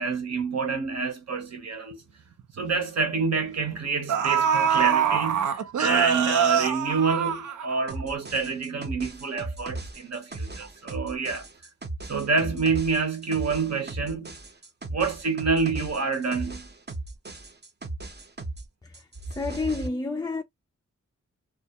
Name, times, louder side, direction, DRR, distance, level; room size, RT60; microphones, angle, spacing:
voice 1, 0.0-2.0 2.6-11.5 12.1-14.3 14.9-16.7, right 4 dB, 60° right, 0.9 m, -27 dB
sound 1, 1.9-2.0 2.4-2.6 3.6-3.7 4.1-8.0 8.4-8.5, right 8 dB, 80° right, 0.5 m, -24 dB
sound 2, 7.9-18.7 18.9-19.9, right 2 dB, 35° right, 0.7 m, -37 dB
voice 2, 18.8-20.4, left 3 dB, 15° left, 0.3 m, -30 dB
2.3 x 2.1 x 2.7 m
cardioid pair, 60°, 30 cm